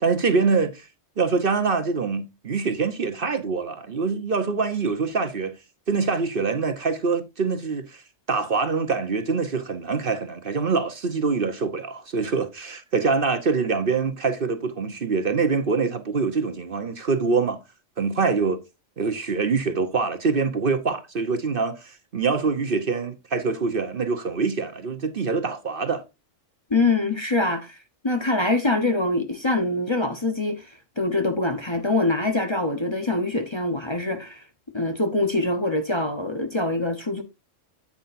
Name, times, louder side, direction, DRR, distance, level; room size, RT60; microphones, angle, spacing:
voice 1, 0.0-0.9 1.2-5.6 5.9-8.0 8.3-17.6 18.0-18.6 19.0-26.0, right 4 dB, 50° right, 1.0 m, -24 dB
voice 2, 26.7-27.8 28.0-34.4 34.7-37.2, left 2 dB, 25° left, 0.9 m, -24 dB
9.6 x 8.7 x 2.6 m
omnidirectional pair, 1.3 m